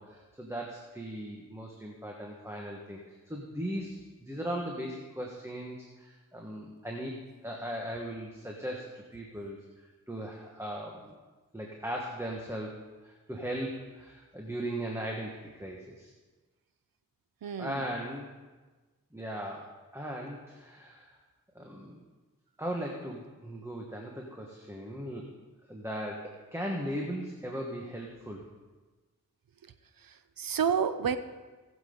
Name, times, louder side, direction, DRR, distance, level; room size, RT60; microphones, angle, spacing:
voice 1, 0.0-3.0 3.3-7.2 7.4-9.6 10.1-11.1 11.5-16.1 17.6-18.3 19.1-21.1 21.5-22.0 22.6-25.3 25.7-28.4, equal, 10° right, -1 dB, 1.6 m, -38 dB
voice 2, 17.4-17.9 30.0-31.2, right 7 dB, 80° right, 11 dB, 0.8 m, -30 dB
19.5 x 7.6 x 3.9 m, 1.3 s
cardioid pair, 60°, 34 cm